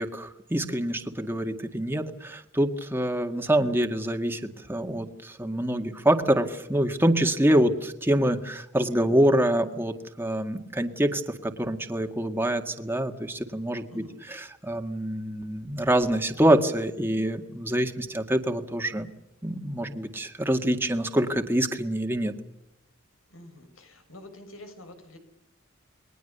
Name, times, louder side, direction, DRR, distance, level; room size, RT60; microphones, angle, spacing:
voice 1, 0.0-4.4 4.7-14.0 14.3-19.1 19.4-22.3, right 1 dB, 10° right, 5 dB, 1.9 m, -25 dB
voice 2, 13.9-14.2 23.3-25.2, left 1 dB, 85° left, 7 dB, 6.6 m, -47 dB
29.5 x 22.0 x 6.9 m, 0.84 s
head